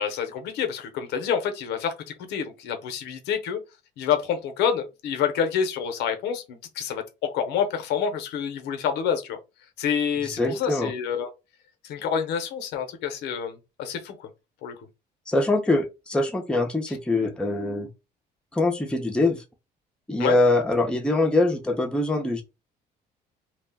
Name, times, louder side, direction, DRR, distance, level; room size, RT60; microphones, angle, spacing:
voice 1, 0.0-3.6 4.0-9.4 9.8-11.3 11.8-14.3 14.6-14.7 20.2-20.4, left 7 dB, 85° left, 0.7 m, -28 dB
voice 2, 10.2-10.9 15.3-17.9 18.5-19.4 20.1-22.4, left 2 dB, 5° left, 0.6 m, -23 dB
2.3 x 2.1 x 3.5 m
cardioid pair, 110°, 17 cm